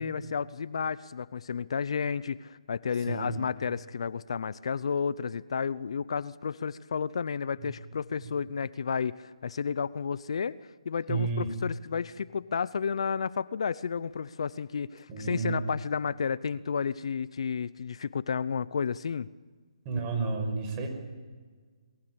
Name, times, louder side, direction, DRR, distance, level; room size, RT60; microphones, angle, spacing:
voice 1, 0.0-10.6 10.8-19.3, left 6 dB, 60° left, 19 dB, 0.7 m, -32 dB
voice 2, 3.0-3.3 8.2-8.3 11.1-11.5 15.1-15.6 19.8-20.9, right 4 dB, 25° right, 4 dB, 5.9 m, -31 dB
22.0 x 22.0 x 8.3 m, 1.5 s
hypercardioid pair, 150°, 3 cm